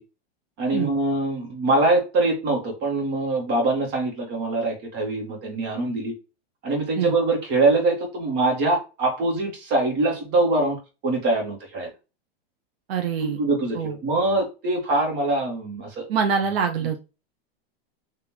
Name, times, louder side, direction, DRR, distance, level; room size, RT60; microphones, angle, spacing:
voice 1, 0.6-6.1 6.6-11.9 13.2-16.0, right 2 dB, 35° right, 1 dB, 1.6 m, -23 dB
voice 2, 12.9-13.4 13.7-13.9 16.1-17.0, right 6 dB, 80° right, 5 dB, 0.9 m, -24 dB
3.7 x 3.0 x 3.0 m, 0.29 s
supercardioid pair, 165°, 30 cm